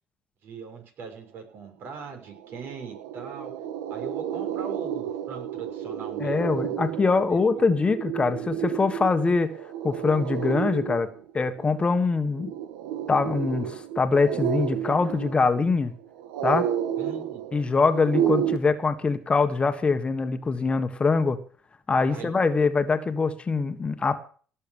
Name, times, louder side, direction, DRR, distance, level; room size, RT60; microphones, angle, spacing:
voice 1, 0.4-3.5 3.9-6.9 7.3-7.7 17.0-17.4 22.1-22.3, right 5 dB, 60° right, 4 dB, 6.2 m, -40 dB
sound 1, 2.0-2.1 2.4-18.6, right 10 dB, 85° right, 1.6 m, -31 dB
voice 2, 6.2-9.5 9.8-11.1 11.3-12.5 13.1-15.9 16.4-16.7 17.5-21.4 21.9-24.2, left 4 dB, 25° left, 9 dB, 1.6 m, -23 dB
17.5 x 7.3 x 7.3 m, 0.42 s
supercardioid pair, 85°, 4 cm